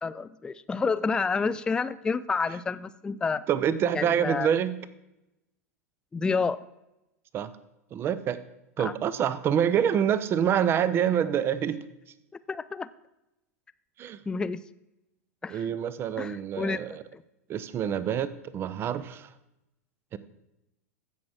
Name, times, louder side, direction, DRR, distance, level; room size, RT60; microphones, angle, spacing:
voice 1, 0.0-3.4 3.9-4.5 6.1-6.6 8.8-8.9 12.5-12.9 14.3-14.6 15.4-15.6 16.2-16.8 17.1-17.2, left 4 dB, 10° left, 15 dB, 0.3 m, -29 dB
voice 2, 3.5-4.8 7.3-7.5 7.9-8.4 8.8-11.8 14.0-14.2 15.5-17.0 17.5-19.3 20.1-20.2, right 9 dB, 30° right, 15 dB, 0.7 m, -26 dB
15.5 x 6.2 x 4.7 m, 0.90 s
figure-of-eight pair, 90°, 8 cm